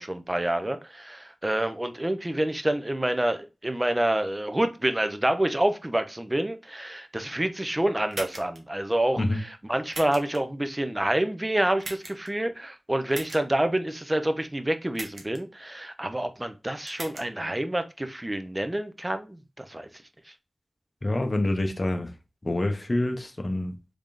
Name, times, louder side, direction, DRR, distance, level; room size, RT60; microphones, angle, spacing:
voice 1, 0.0-19.9, right 1 dB, 20° right, 0.5 m, -28 dB
sound 1, 8.1-8.6 9.9-10.4 11.8-12.3 13.1-13.4 14.9-15.4 16.9-17.2, right 2 dB, 65° right, 0.9 m, -38 dB
voice 2, 21.0-22.1 22.4-23.8, left 1 dB, 35° left, 0.7 m, -26 dB
3.5 x 3.3 x 2.4 m
wide cardioid pair, 70°, 0 cm